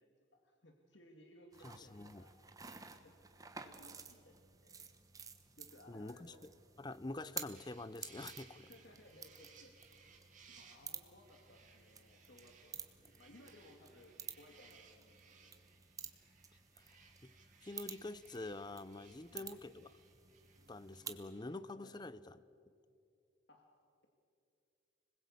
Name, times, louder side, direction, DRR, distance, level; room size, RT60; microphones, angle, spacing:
voice 1, 0.0-2.3 3.0-3.1 3.4-4.8 5.6-6.4 8.6-9.7 10.5-15.6 19.2-19.5 21.8-22.0 23.5-23.7, left 1 dB, 65° left, 2.1 m, -62 dB
sound 1, 1.5-21.2, right 6 dB, 20° right, 1.1 m, -53 dB
voice 2, 1.6-2.2 5.9-6.5 6.8-8.7 16.8-17.3 17.6-19.9 20.7-22.3 22.6-22.7, left 2 dB, 20° left, 0.6 m, -47 dB
sound 2, 7.6-21.6, right 6 dB, 40° right, 2.6 m, -64 dB
26.0 x 20.5 x 8.5 m
head